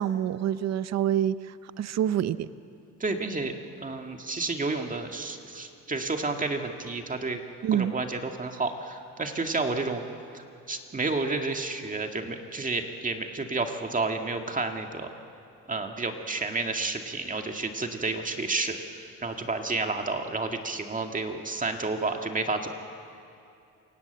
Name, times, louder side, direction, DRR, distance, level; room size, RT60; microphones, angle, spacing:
voice 1, 0.0-2.5 7.6-7.9, right 10 dB, 60° right, 14 dB, 0.7 m, -27 dB
voice 2, 3.0-3.5 3.8-7.4 7.7-10.0 10.3-15.1 15.7-18.8 19.2-22.7, right 3 dB, 25° right, 4 dB, 2.0 m, -30 dB
28.0 x 17.5 x 8.0 m, 2.6 s
cardioid pair, 90°, 30 cm